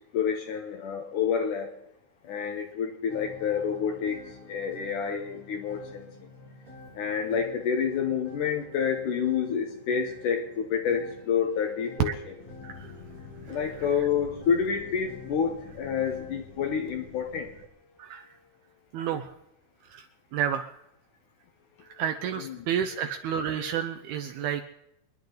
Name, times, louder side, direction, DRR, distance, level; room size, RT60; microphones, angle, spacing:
voice 1, 0.1-1.7 2.2-6.1 7.0-12.1 13.5-17.5 22.4-22.7 24.4-24.5, left 7 dB, 75° left, 3 dB, 1.9 m, -28 dB
sound 1, 3.1-16.3, left 1 dB, 25° right, 4.9 m, -48 dB
sound 2, 12.4-17.7, left 7 dB, 60° left, 2.1 m, -48 dB
voice 2, 18.9-19.3 19.8-20.1 20.3-20.7 21.9-24.6, right 8 dB, 85° right, 7 dB, 2.2 m, -31 dB
27.0 x 10.5 x 3.9 m, 0.84 s
omnidirectional pair, 5.3 m